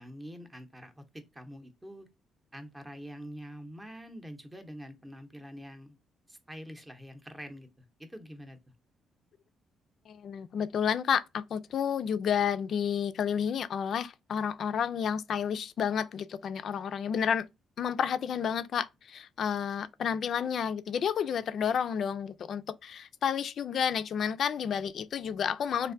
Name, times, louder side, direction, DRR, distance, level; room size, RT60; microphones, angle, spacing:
voice 1, 0.0-2.1 2.5-6.0 6.3-8.6, equal, 15° right, 0.7 m, -45 dB
voice 2, 10.1-17.5 17.8-25.9, left 8 dB, 60° left, 0.3 m, -30 dB
3.2 x 2.5 x 2.5 m
cardioid pair, 90°, 0 cm